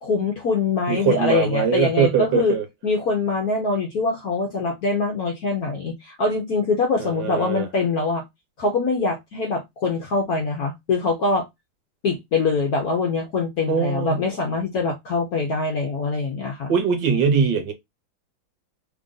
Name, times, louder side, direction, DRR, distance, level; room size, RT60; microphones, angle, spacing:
voice 1, 0.0-2.5 2.8-8.2 8.6-11.4 12.0-16.7, left 3 dB, 60° left, 1.0 m, -23 dB
voice 2, 0.9-2.7 7.0-7.7 13.7-14.2 16.7-17.7, right 6 dB, 65° right, 1.3 m, -21 dB
3.4 x 2.5 x 3.7 m
omnidirectional pair, 2.4 m